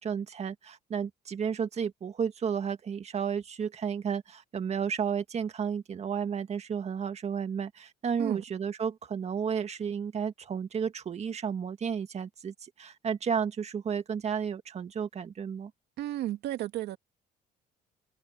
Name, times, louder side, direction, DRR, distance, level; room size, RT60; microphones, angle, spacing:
voice 1, 0.0-15.7, right 7 dB, 40° right, 1.9 m, -32 dB
voice 2, 16.0-17.0, right 14 dB, 80° right, 2.4 m, -33 dB
cardioid pair, 110°, 17 cm